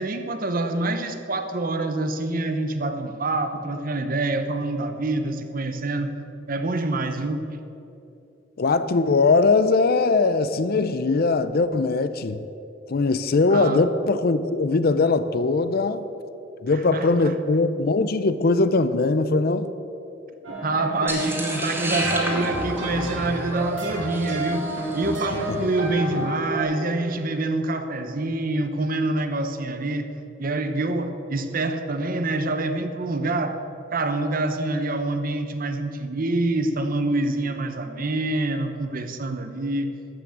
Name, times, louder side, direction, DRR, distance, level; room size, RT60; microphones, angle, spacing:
voice 1, 0.0-6.1 6.5-7.4 13.5-13.8 16.7-17.3 20.6-30.1 30.4-33.6 33.9-39.9, right 2 dB, 50° right, 0.9 m, -26 dB
voice 2, 8.6-12.5 12.9-16.1 16.6-19.7 25.5-25.6 26.1-26.3, left 3 dB, 55° left, 0.5 m, -21 dB
sound 1, 20.4-26.6, right 1 dB, 80° right, 2.3 m, -30 dB
sound 2, 21.1-25.4, right 1 dB, 10° right, 1.8 m, -31 dB
13.0 x 6.0 x 8.0 m
head